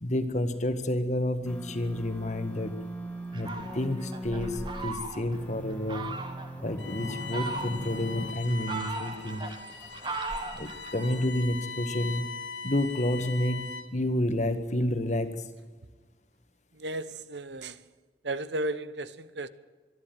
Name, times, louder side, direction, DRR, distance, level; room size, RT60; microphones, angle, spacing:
voice 1, 0.0-2.8 3.3-6.1 6.6-9.4 10.6-12.3 12.6-15.5, left 1 dB, 40° left, 1.7 m, -30 dB
sound 1, 1.5-4.9 5.3-8.3, equal, 10° left, 1.8 m, -40 dB
Fowl, 3.3-5.4 5.9-6.5 7.1-8.0 8.5-11.2, right 3 dB, 25° right, 1.9 m, -38 dB
Bowed string instrument, 6.8-14.0, left 4 dB, 90° left, 2.1 m, -41 dB
voice 2, 16.8-17.8 18.2-19.5, right 2 dB, 80° right, 1.1 m, -34 dB
25.0 x 11.0 x 9.3 m
head